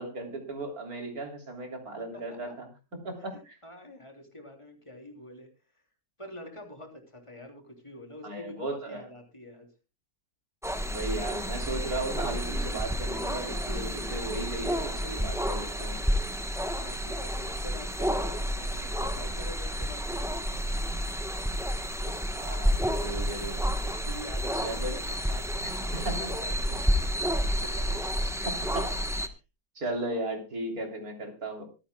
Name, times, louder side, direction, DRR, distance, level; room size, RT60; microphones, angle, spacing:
voice 1, 0.0-2.7 3.0-3.6 8.2-9.0 10.9-16.0 22.4-23.6 24.6-25.0 26.1-26.3 28.5-29.3 29.8-31.6, right 2 dB, 80° right, 3 dB, 3.8 m, -36 dB
voice 2, 3.3-5.5 6.2-9.7 15.8-16.0 16.8-20.7 22.1-22.2 23.8-27.1 27.5-28.0, left 1 dB, 20° left, 3 dB, 3.4 m, -46 dB
sound 1, 10.6-29.3, equal, ahead, 0.9 m, -30 dB
25.0 x 10.0 x 2.3 m, 0.29 s
omnidirectional pair, 1.5 m